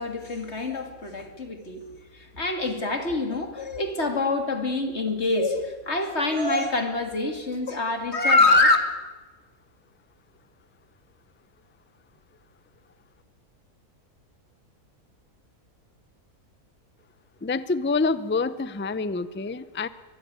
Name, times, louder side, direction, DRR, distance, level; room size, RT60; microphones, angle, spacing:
voice 1, 0.0-1.8 2.1-8.8, left 3 dB, 45° left, 2.7 m, -25 dB
voice 2, 17.4-19.9, left 4 dB, 15° left, 0.4 m, -27 dB
23.0 x 21.5 x 9.6 m
omnidirectional pair, 1.6 m